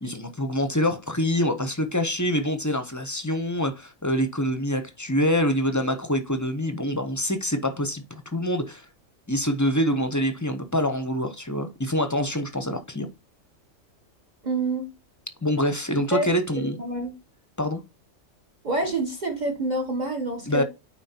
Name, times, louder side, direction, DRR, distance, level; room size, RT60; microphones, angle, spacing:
voice 1, 0.0-8.8 9.3-13.1 15.4-16.8 17.6-17.8 20.5-20.6, equal, 20° left, 0.6 m, -25 dB
voice 2, 14.4-14.9 16.1-17.1 18.6-20.6, right 2 dB, 40° right, 1.1 m, -27 dB
9.2 x 4.4 x 2.8 m
omnidirectional pair, 1.3 m